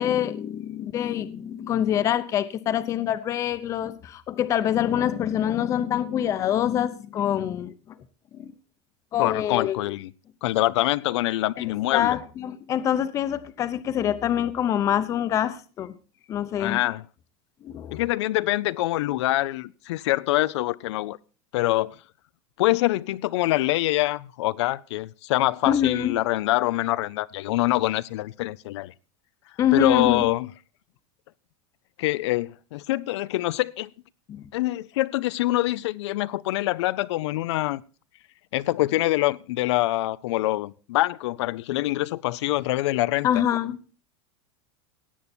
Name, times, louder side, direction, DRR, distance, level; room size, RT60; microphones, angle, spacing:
voice 1, 0.0-7.7 8.3-8.5 9.1-9.8 11.6-15.9 16.3-16.8 17.6-18.0 25.6-26.1 29.6-30.3 34.3-34.4 43.2-43.8, left 10 dB, 20° left, 0.7 m, -25 dB
voice 2, 9.2-10.1 10.4-12.2 16.6-17.0 17.9-21.2 21.5-21.9 22.6-28.9 29.7-30.5 32.0-33.9 34.5-37.8 38.5-43.4, left 17 dB, 75° left, 0.5 m, -25 dB
17.0 x 8.5 x 4.3 m
supercardioid pair, 175°, 15 cm